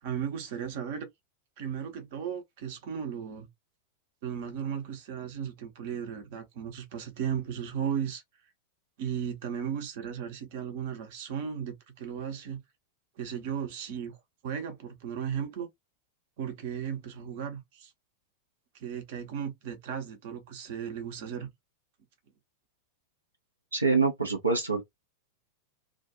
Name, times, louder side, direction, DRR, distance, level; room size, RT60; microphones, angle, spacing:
voice 1, 0.0-1.1 1.6-3.5 4.2-8.2 9.0-12.6 13.2-14.2 14.4-15.7 16.4-17.9 18.7-21.5, right 8 dB, 50° right, 0.9 m, -35 dB
voice 2, 23.7-24.8, right 4 dB, 80° right, 0.6 m, -25 dB
2.4 x 2.3 x 2.7 m
figure-of-eight pair, 90°, 0 cm